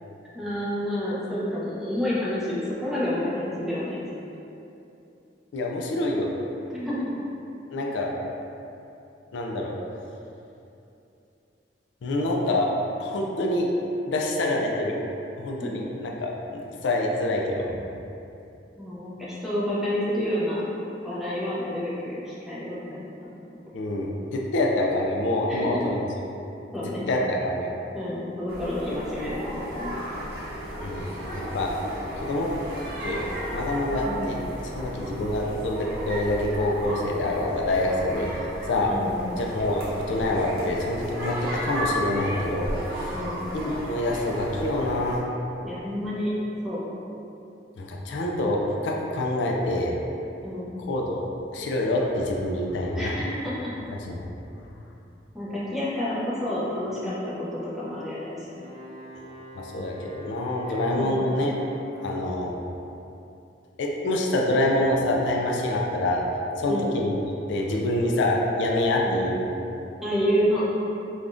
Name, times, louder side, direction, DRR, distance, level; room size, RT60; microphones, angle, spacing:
voice 1, 0.3-4.0 6.7-7.0 18.8-20.7 21.0-23.3 25.5-25.8 26.7-27.1 27.9-29.9 34.0-34.3 38.9-39.4 43.1-43.4 45.6-46.3 46.6-46.8 50.4-50.7 52.9-53.7 55.3-58.5 60.8-61.2 66.7-66.9 69.0-69.2 70.0-70.6, equal, ahead, -9 dB, 0.6 m, -29 dB
voice 2, 5.5-6.3 7.7-8.1 9.3-9.7 12.0-12.7 13.0-13.7 14.1-15.0 15.4-17.8 23.7-26.1 27.1-27.7 30.8-31.8 32.2-32.5 33.0-34.4 34.7-38.3 38.7-38.9 39.4-43.2 43.5-45.2 47.8-49.9 50.8-51.2 51.5-53.1 54.0-54.3 59.6-61.5 62.0-62.6 63.8-66.2 66.6-67.2 67.5-69.5, left 1 dB, 90° left, -1 dB, 0.4 m, -26 dB
sound 1, 28.5-45.2, equal, 60° right, 0.7 m, -34 dB
Wind instrument woodwind instrument, 58.5-62.2, equal, 70° left, 0.8 m, -45 dB
3.4 x 2.3 x 2.5 m, 2.8 s
head